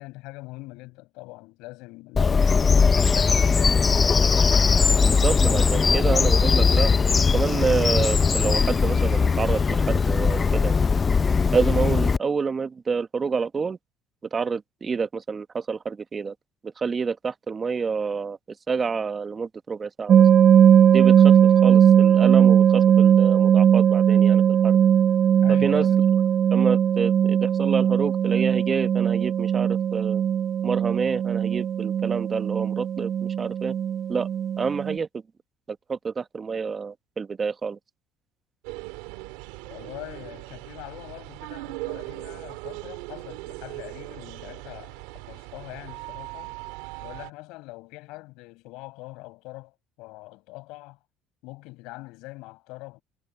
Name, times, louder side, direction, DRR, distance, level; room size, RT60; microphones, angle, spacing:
voice 1, 0.0-3.8 25.4-26.0 39.7-46.5 47.0-51.0 51.4-53.0, left 22 dB, 80° left, 6.4 m, -42 dB
Bird vocalization bird call bird song, 2.1-12.2, left 5 dB, 30° left, 0.5 m, -20 dB
voice 2, 5.0-6.9 7.3-10.7 11.5-13.8 14.3-16.3 16.6-18.4 18.7-20.3 20.9-21.3 21.6-24.8 25.5-25.9 26.5-30.2 30.6-33.7 34.1-34.3 34.6-35.1 35.7-37.8, right 5 dB, 30° right, 1.2 m, -28 dB
sound 1, 20.1-35.0, right 9 dB, 50° right, 0.4 m, -19 dB
sound 2, 38.6-47.3, right 24 dB, 90° right, 2.2 m, -39 dB
supercardioid pair, 85°, 0 cm